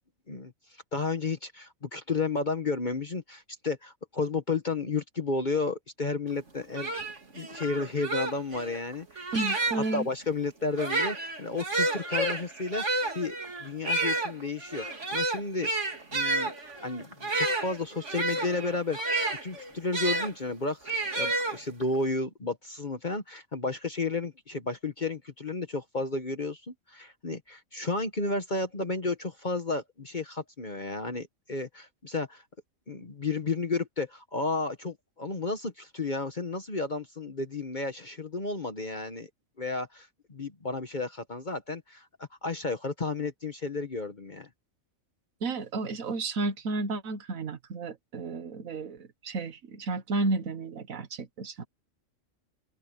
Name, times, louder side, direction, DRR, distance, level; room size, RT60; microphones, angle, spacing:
voice 1, 0.3-6.9 7.3-9.3 9.7-15.7 16.1-16.5 16.8-32.4 32.9-39.3 39.6-44.5, left 3 dB, 35° left, 1.3 m, -32 dB
sound 1, 6.4-6.5 6.7-10.0 10.7-20.3 20.9-22.0, right 2 dB, 60° right, 3.4 m, -30 dB
voice 2, 9.3-10.1 45.4-51.6, right 3 dB, 85° right, 1.7 m, -32 dB
open air
omnidirectional pair, 1.4 m